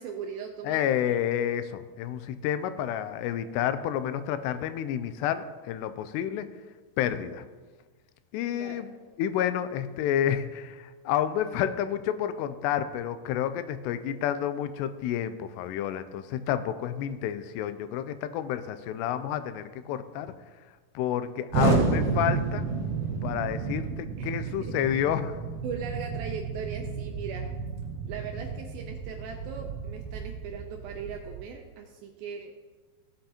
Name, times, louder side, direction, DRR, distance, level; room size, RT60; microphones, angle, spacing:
voice 1, 0.0-1.2 8.5-8.8 24.2-24.7 25.6-27.5 28.1-32.5, right 6 dB, 85° right, 3 dB, 2.2 m, -39 dB
voice 2, 0.6-6.5 7.0-7.5 8.3-8.9 9.2-20.3 21.0-22.6 23.2-25.4, left 10 dB, 85° left, 11 dB, 2.6 m, -30 dB
Explosion, 21.5-31.4, right 4 dB, 60° right, 2.8 m, -31 dB
16.5 x 7.9 x 2.9 m, 1.4 s
omnidirectional pair, 4.9 m